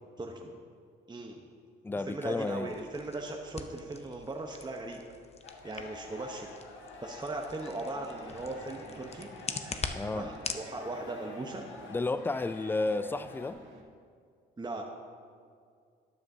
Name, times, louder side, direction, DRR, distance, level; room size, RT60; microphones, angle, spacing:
voice 1, 0.2-0.6 1.1-1.4 1.9-5.0 5.6-6.5 7.0-9.3 10.1-11.6 14.6-14.8, right 2 dB, 20° right, 1.0 m, -38 dB
voice 2, 1.8-2.7 9.9-10.3 11.9-13.6, left 3 dB, 10° left, 0.3 m, -32 dB
sound 1, 2.7-10.7, left 4 dB, 30° left, 0.7 m, -43 dB
sound 2, 5.4-13.5, left 3 dB, 70° left, 1.4 m, -49 dB
sound 3, 7.9-13.8, right 3 dB, 70° right, 1.4 m, -52 dB
13.0 x 9.5 x 2.8 m
supercardioid pair, 60°, 20 cm